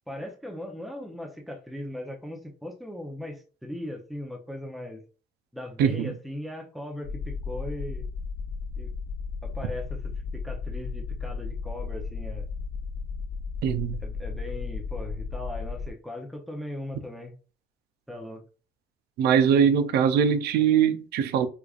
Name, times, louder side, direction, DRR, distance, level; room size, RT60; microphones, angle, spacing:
voice 1, 0.1-5.0 5.5-8.1 8.8-8.9 9.4-12.5 14.0-17.3 18.1-18.4, left 1 dB, ahead, 0.7 m, -38 dB
voice 2, 5.8-6.1 13.6-14.0 19.2-21.5, right 8 dB, 75° right, 0.5 m, -22 dB
sound 1, 7.0-15.9, left 5 dB, 70° left, 0.6 m, -34 dB
4.8 x 2.4 x 2.4 m
cardioid pair, 110°, 17 cm